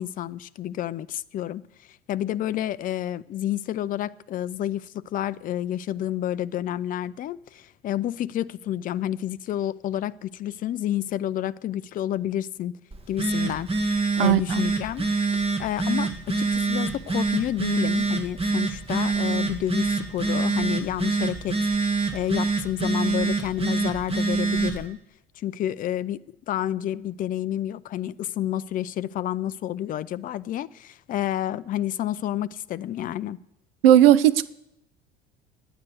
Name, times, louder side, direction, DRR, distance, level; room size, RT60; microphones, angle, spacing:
voice 1, 0.0-1.6 2.1-12.8 13.1-13.7 14.2-15.1 15.3-21.6 22.1-25.0 25.4-33.4, left 12 dB, 30° left, 0.4 m, -29 dB
Telephone, 12.9-24.9, right 3 dB, 20° right, 1.6 m, -26 dB
voice 2, 33.8-34.5, right 12 dB, 70° right, 0.6 m, -15 dB
11.0 x 9.6 x 8.1 m
figure-of-eight pair, 70°, 31 cm